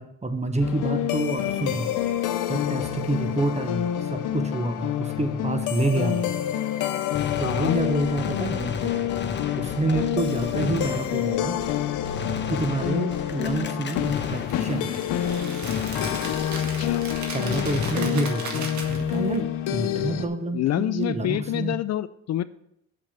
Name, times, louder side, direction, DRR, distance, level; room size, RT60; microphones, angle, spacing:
voice 1, 0.0-1.9 2.5-6.3 7.4-9.0 9.6-11.6 12.5-15.0 17.3-21.7, right 2 dB, 20° right, 8 dB, 1.2 m, -28 dB
sound 1, 0.6-20.3, left 11 dB, 90° left, 0.8 m, -28 dB
Gunshot gunfire, 7.1-14.9 15.2-18.6, left 5 dB, 35° left, 0.9 m, -35 dB
voice 2, 7.4-7.8 9.9-10.1 16.6-17.1 20.5-22.4, left 13 dB, 60° left, 14 dB, 0.5 m, -27 dB
sound 2, 13.9-19.4, right 4 dB, 70° right, 1.9 m, -37 dB
7.0 x 5.9 x 7.3 m, 0.77 s
cardioid pair, 90°, 30 cm